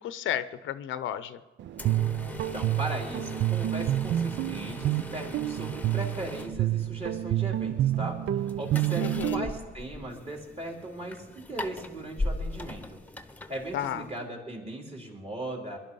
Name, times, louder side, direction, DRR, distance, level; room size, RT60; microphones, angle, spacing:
voice 1, 0.0-1.4 9.0-9.5 13.7-14.1, left 10 dB, 80° left, 13 dB, 0.7 m, -33 dB
Guitar, 1.6-9.6, right 13 dB, 65° right, 0.5 m, -29 dB
sound 1, 1.7-14.3, left 2 dB, 10° left, 1.1 m, -40 dB
voice 2, 2.5-8.2 8.6-13.0 13.5-15.8, right 1 dB, 30° right, 0 dB, 3.9 m, -38 dB
21.0 x 11.5 x 5.5 m, 1.3 s
cardioid pair, 90°, 20 cm